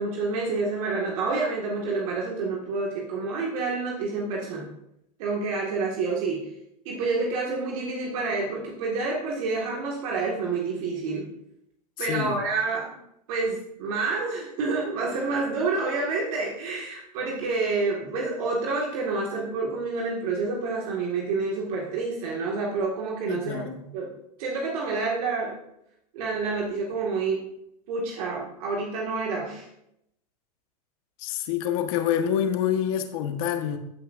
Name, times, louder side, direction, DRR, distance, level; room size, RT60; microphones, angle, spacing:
voice 1, 0.0-4.6 5.2-6.5 6.9-11.3 12.0-12.9 13.3-24.1 24.4-25.6 26.1-27.4 27.9-29.7, right 3 dB, 65° right, -2 dB, 1.8 m, -28 dB
voice 2, 12.0-12.4 23.3-23.8 31.2-33.8, left 9 dB, 60° left, 7 dB, 1.2 m, -27 dB
14.0 x 6.1 x 2.5 m, 0.79 s
hypercardioid pair, 120°, 20 cm